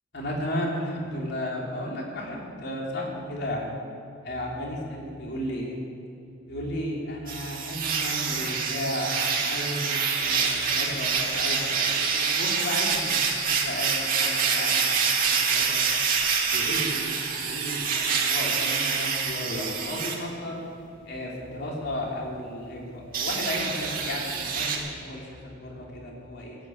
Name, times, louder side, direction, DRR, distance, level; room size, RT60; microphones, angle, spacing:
voice 1, 0.1-3.7 4.2-5.8 6.5-15.8 16.4-17.1 17.4-20.6 21.0-26.6, left 1 dB, 60° left, -2 dB, 3.2 m, -34 dB
sound 1, 7.3-20.2 23.1-24.8, right 5 dB, 50° right, 2.1 m, -26 dB
15.0 x 9.4 x 8.5 m, 2.6 s
head